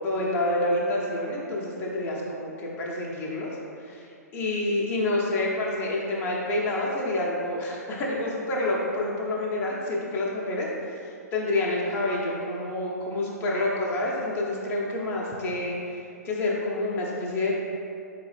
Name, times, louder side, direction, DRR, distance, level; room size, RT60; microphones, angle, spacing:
voice 1, 0.0-3.5 3.8-17.6, left 2 dB, 20° left, -3 dB, 0.7 m, -28 dB
4.5 x 3.5 x 3.4 m, 2.5 s
figure-of-eight pair, 115°, 9 cm